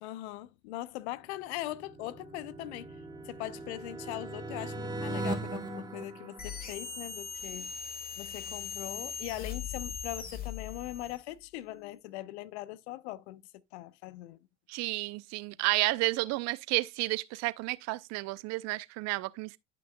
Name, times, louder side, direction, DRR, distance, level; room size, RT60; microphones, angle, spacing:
voice 1, 0.0-2.9 3.2-7.7 8.2-13.4 13.7-14.4, left 15 dB, 65° left, 0.8 m, -40 dB
sound 1, 1.2-7.1, right 2 dB, 10° right, 1.6 m, -39 dB
sound 2, 6.4-11.3, left 6 dB, 25° left, 2.3 m, -40 dB
voice 2, 14.7-19.6, right 21 dB, 45° right, 0.6 m, -31 dB
11.5 x 6.0 x 2.2 m
hypercardioid pair, 80°, 36 cm